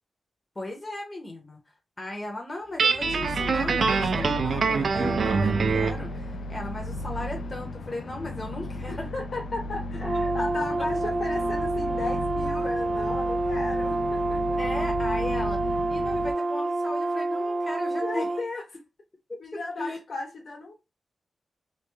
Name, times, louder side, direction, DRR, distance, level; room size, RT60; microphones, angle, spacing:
voice 1, 0.6-1.6 2.0-9.1 14.6-18.3 19.3-20.0, left 1 dB, 25° left, 0.7 m, -37 dB
Guitar, 2.8-6.0, right 5 dB, 65° right, 0.4 m, -24 dB
sound 1, 3.0-16.3, left 1 dB, 85° left, 0.4 m, -35 dB
voice 2, 8.9-14.8 18.0-18.6 19.4-20.7, left 3 dB, 65° left, 1.1 m, -35 dB
Brass instrument, 10.0-18.4, right 2 dB, 25° right, 0.8 m, -28 dB
3.2 x 2.5 x 3.3 m
wide cardioid pair, 125°, 0 cm